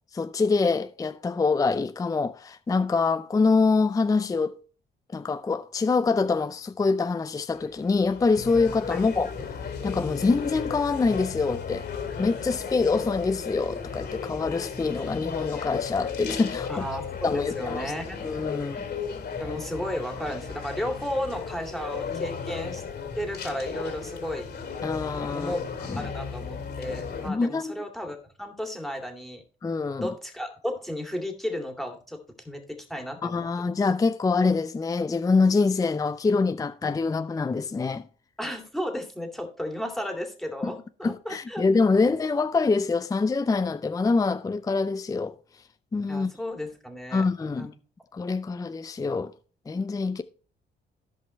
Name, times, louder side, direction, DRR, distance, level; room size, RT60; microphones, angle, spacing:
voice 1, 0.1-4.6 5.1-11.9 12.2-16.9 17.2-17.8 18.2-18.8 24.8-25.5 25.9-26.1 27.3-27.8 29.6-30.1 33.2-38.1 40.6-40.7 41.0-45.4 45.9-46.3 47.1-47.7 48.1-49.3 49.7-50.2, left 4 dB, 15° left, 0.5 m, -25 dB
sound 1, 7.5-27.3, left 6 dB, 60° left, 2.4 m, -35 dB
voice 2, 16.7-18.3 19.4-22.8 23.1-24.5 25.3-25.6 25.9-29.4 30.0-32.2 32.5-33.8 38.4-41.6 46.1-47.3 47.6-47.7, equal, ahead, 2.3 m, -33 dB
15.5 x 5.4 x 3.2 m
cardioid pair, 90°, 20 cm